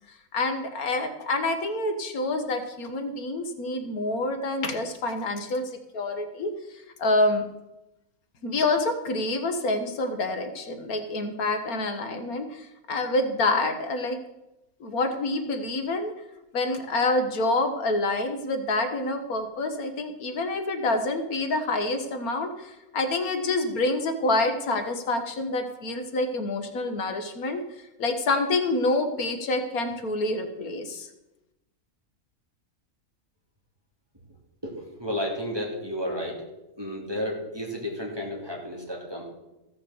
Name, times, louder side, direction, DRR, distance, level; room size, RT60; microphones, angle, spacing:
voice 1, 0.3-6.5 7.0-7.4 8.4-14.2 14.8-16.1 16.5-27.6 28.0-31.1, left 2 dB, 75° left, 7 dB, 1.6 m, -27 dB
voice 2, 34.6-36.5 36.8-39.3, equal, 15° right, -1 dB, 2.7 m, -32 dB
14.5 x 6.5 x 7.1 m, 0.94 s
omnidirectional pair, 1.5 m